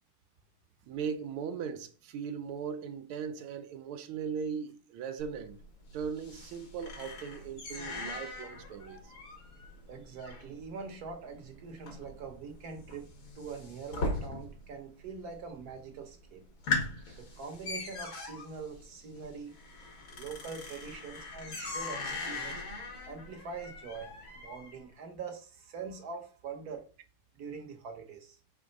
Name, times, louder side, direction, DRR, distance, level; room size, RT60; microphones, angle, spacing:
voice 1, 0.9-5.6 5.9-9.1 17.0-17.2, right 6 dB, 80° right, 1.6 m, -38 dB
sound 1, 5.2-14.8 15.0-15.6 16.0-16.1 16.4-24.8, left 3 dB, 65° left, 2.5 m, -40 dB
voice 2, 9.9-16.4 17.2-19.5 20.1-22.6 23.1-24.1 24.3-26.9 27.3-28.4, right 5 dB, 55° right, 1.2 m, -43 dB
5.3 x 3.5 x 5.2 m
omnidirectional pair, 2.4 m